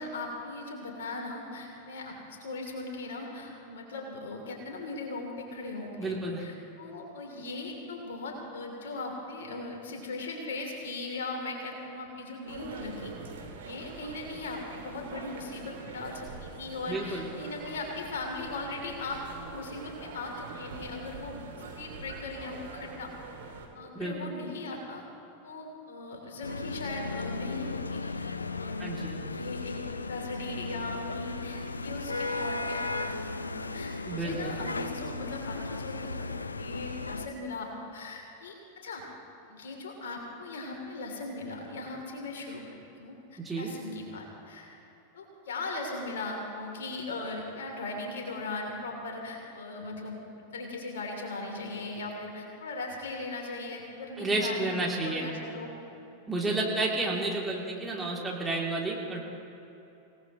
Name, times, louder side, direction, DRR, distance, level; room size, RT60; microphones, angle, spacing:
voice 1, 0.0-13.1 13.6-23.1 23.7-25.0 25.4-28.9 29.2-36.3 36.6-39.0 39.5-42.6 42.9-44.8 45.1-55.7, left 2 dB, 60° left, 1 dB, 3.1 m, -39 dB
voice 2, 6.0-6.4 16.9-17.3 23.9-24.3 28.8-29.2 34.0-34.6 43.4-43.7 54.2-55.3 56.3-59.2, right 2 dB, 10° right, -3 dB, 2.9 m, -31 dB
sound 1, 12.5-23.7, right 4 dB, 60° right, 1.9 m, -44 dB
sound 2, 26.4-37.3, left 3 dB, 80° left, 0.5 m, -36 dB
26.0 x 18.0 x 3.1 m, 2.9 s
figure-of-eight pair, 90°, 0 cm